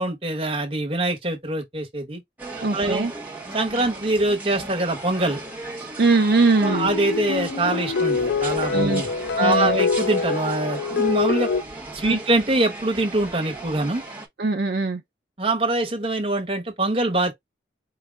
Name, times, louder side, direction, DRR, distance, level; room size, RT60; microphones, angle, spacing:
voice 1, 0.0-2.2 2.7-3.1 3.5-5.4 6.6-9.1 9.4-11.5 11.9-14.0 15.4-17.3, right 2 dB, 30° right, 1.1 m, -24 dB
sound 1, 2.4-14.3, right 2 dB, 10° right, 0.9 m, -36 dB
voice 2, 2.6-3.1 5.8-6.9 8.7-9.0 9.4-9.8 12.0-12.2 14.4-15.0, right 3 dB, 65° right, 0.5 m, -21 dB
sound 2, 6.6-11.6, left 4 dB, 85° left, 0.4 m, -24 dB
4.7 x 2.1 x 3.4 m
head